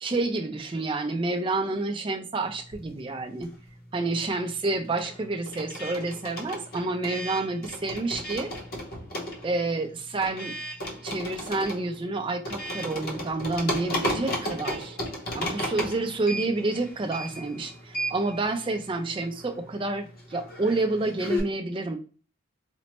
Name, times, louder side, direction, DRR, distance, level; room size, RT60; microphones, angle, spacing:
voice 1, 0.0-3.5 3.9-8.5 9.4-10.6 11.0-15.0 15.3-22.0, right 2 dB, 25° right, 5 dB, 0.4 m, -29 dB
sound 1, 2.6-3.8 4.1-21.4, equal, 45° left, 0.7 m, -35 dB
4.3 x 2.0 x 2.9 m, 0.39 s
head